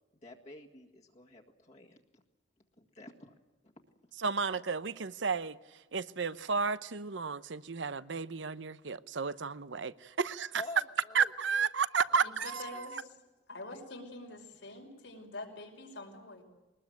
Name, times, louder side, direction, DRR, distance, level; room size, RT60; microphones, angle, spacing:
voice 1, 0.2-2.2 2.8-3.3 3.6-3.7 10.5-11.7 12.1-12.3 12.7-12.9 13.7-13.8 15.5-15.6, left 2 dB, 35° left, 1.8 m, -49 dB
voice 2, 4.2-5.6 5.9-10.6 11.1-13.0, right 5 dB, 80° right, 0.8 m, -32 dB
voice 3, 12.6-13.1 13.5-16.4, left 2 dB, 80° left, 5.5 m, -46 dB
22.5 x 20.0 x 9.3 m
head